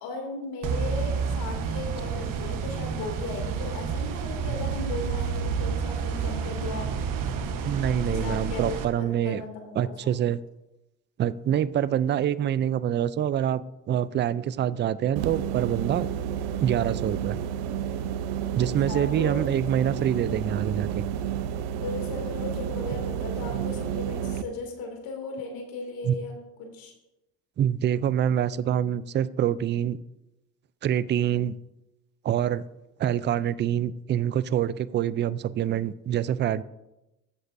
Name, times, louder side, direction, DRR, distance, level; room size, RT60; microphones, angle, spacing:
voice 1, 0.0-6.9 8.0-10.1 18.6-19.4 21.8-26.9, left 3 dB, 70° left, 2 dB, 2.7 m, -36 dB
sound 1, 0.6-8.9, right 6 dB, 60° right, 1.2 m, -30 dB
voice 2, 7.6-9.4 9.8-10.4 11.2-13.6 13.9-16.1 16.6-17.4 18.5-21.0 23.5-23.6 26.0-26.1 27.6-30.0 30.8-31.5 32.2-32.6 33.0-36.6, right 10 dB, 30° right, 17 dB, 0.4 m, -26 dB
sound 2, 15.2-24.4, right 9 dB, 90° right, 0.7 m, -31 dB
14.0 x 8.0 x 2.7 m, 0.95 s
supercardioid pair, 80°, 37 cm